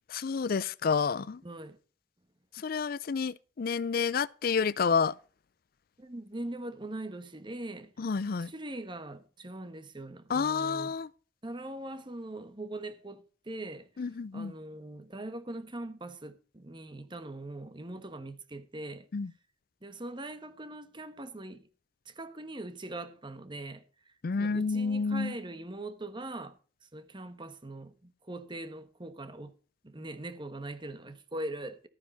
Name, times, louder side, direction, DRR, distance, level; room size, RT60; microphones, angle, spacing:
voice 1, 0.1-1.4 2.6-5.1 8.0-8.5 10.3-11.1 14.0-14.5 19.1-19.3 24.2-25.4, left 5 dB, 50° left, 0.4 m, -29 dB
voice 2, 1.4-1.8 6.0-7.9 8.4-10.9 11.4-13.9 14.3-19.1 19.8-21.7 22.1-23.8 24.4-26.6 26.9-29.5 29.8-31.9, right 2 dB, 25° right, 1.2 m, -41 dB
13.5 x 9.6 x 4.0 m
head